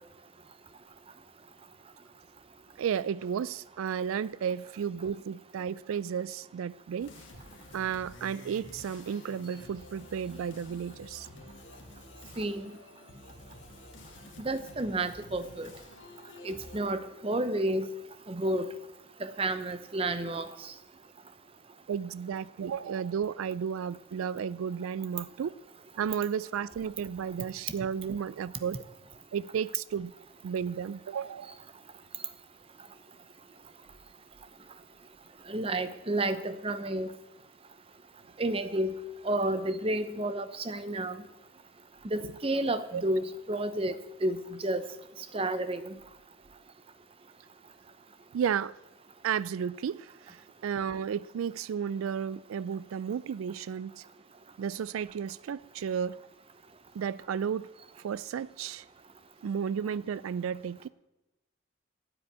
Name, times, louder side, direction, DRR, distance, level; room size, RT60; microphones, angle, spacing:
voice 1, 2.8-7.1 7.7-11.3 21.9-25.6 26.0-28.8 29.3-30.1 30.4-31.6 42.9-43.0 48.3-48.8 49.2-54.0 54.6-56.2 56.9-57.7 58.0-58.9 59.4-60.9, right 7 dB, 90° right, 0.3 m, -33 dB
sound 1, 7.0-16.8, left 2 dB, 65° left, 1.7 m, -50 dB
voice 2, 12.4-12.7 14.4-15.7 16.4-17.9 18.3-18.7 19.2-20.7 35.5-37.1 38.4-39.0 39.2-41.2 42.0-43.9 44.2-44.8 45.3-46.0, right 1 dB, 25° right, 0.7 m, -31 dB
12.5 x 7.1 x 9.4 m
head